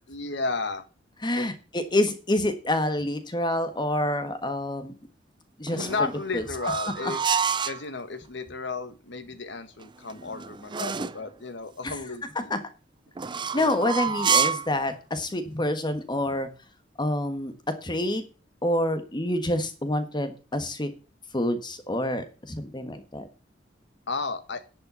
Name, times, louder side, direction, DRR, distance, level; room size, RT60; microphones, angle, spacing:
voice 1, 0.1-0.8 1.3-1.5 5.7-7.2 7.6-12.5 13.5-13.9 24.1-24.6, left 3 dB, 65° left, 9 dB, 1.6 m, -33 dB
voice 2, 1.2-4.9 5.6-6.4 7.0-7.1 11.8-12.0 12.5-12.6 13.5-16.5 17.0-17.5 17.8-18.2 18.6-20.9 21.3-23.3, left 1 dB, 25° left, 9 dB, 1.4 m, -27 dB
sound 1, 5.7-7.8 9.8-11.2 13.2-14.7, right 6 dB, 25° right, 0.4 m, -28 dB
11.0 x 5.5 x 7.0 m, 0.34 s
head